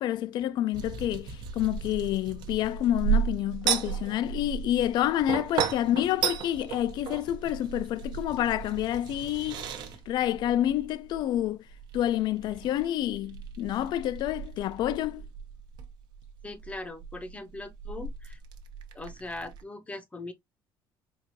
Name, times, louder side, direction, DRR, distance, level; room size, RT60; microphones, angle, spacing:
voice 1, 0.0-9.7 10.1-11.6 11.9-15.2, left 12 dB, 60° left, 0.4 m, -28 dB
sound 1, 0.7-19.6, right 7 dB, 60° right, 0.8 m, -35 dB
voice 2, 16.4-18.4 18.9-20.3, left 2 dB, 15° left, 0.6 m, -40 dB
4.6 x 2.4 x 2.7 m
cardioid pair, 125°, 8 cm